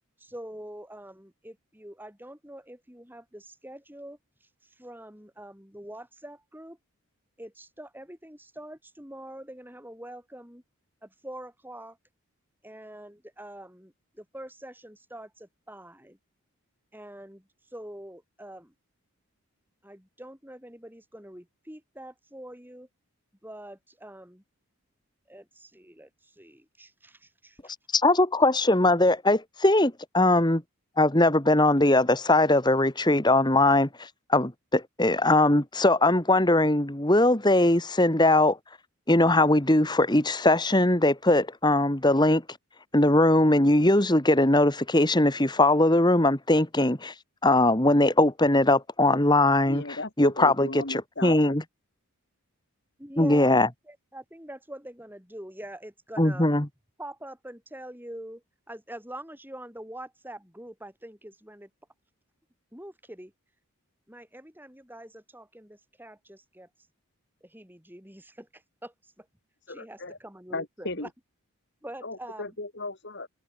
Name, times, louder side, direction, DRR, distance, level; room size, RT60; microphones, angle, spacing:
voice 1, 0.2-4.2 4.6-6.8 7.4-10.6 11.0-12.0 12.6-16.2 16.9-18.7 19.8-22.9 23.4-24.4 25.3-27.7 53.0-53.6 53.9-56.5 57.0-61.7 62.7-63.3 64.1-66.7 67.4-69.3 69.7-71.1 71.8-72.6, right 1 dB, 10° right, 6.2 m, -44 dB
voice 2, 27.9-30.6 31.0-38.6 39.1-42.4 42.9-47.1 47.4-49.8 50.2-51.6 53.2-53.7 56.2-56.7, left 2 dB, 20° left, 1.9 m, -21 dB
voice 3, 49.7-51.6 69.7-70.2 70.5-71.1 72.0-73.3, left 2 dB, 50° left, 2.8 m, -36 dB
head